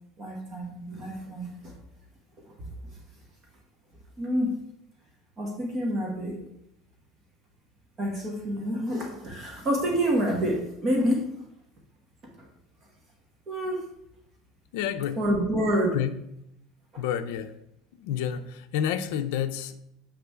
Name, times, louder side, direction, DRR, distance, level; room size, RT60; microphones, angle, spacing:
voice 1, 0.2-1.7 2.5-2.6 4.2-4.5 5.4-6.4 8.0-11.3 12.4-12.5 13.5-13.9 15.2-16.0 16.9-17.0, equal, 25° right, 0 dB, 1.0 m, -28 dB
voice 2, 14.7-15.2 15.9-16.2 17.0-17.5 17.9-19.8, left 9 dB, 75° left, 9 dB, 0.5 m, -29 dB
6.8 x 5.8 x 3.3 m, 0.79 s
cardioid pair, 175°, 0 cm